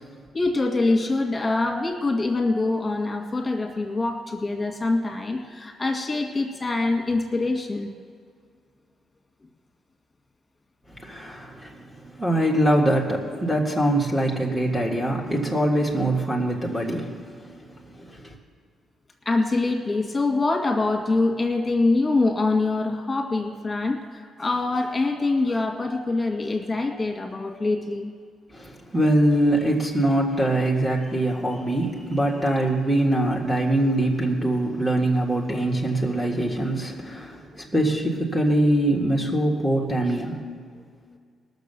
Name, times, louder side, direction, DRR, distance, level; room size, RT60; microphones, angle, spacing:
voice 1, 0.3-7.9 19.3-28.1, left 3 dB, 25° left, 3 dB, 2.0 m, -24 dB
voice 2, 11.0-17.3 17.6-18.3 28.5-40.4, right 1 dB, 5° right, -2 dB, 1.9 m, -23 dB
18.5 x 6.7 x 6.9 m, 2.1 s
cardioid pair, 90°, 0 cm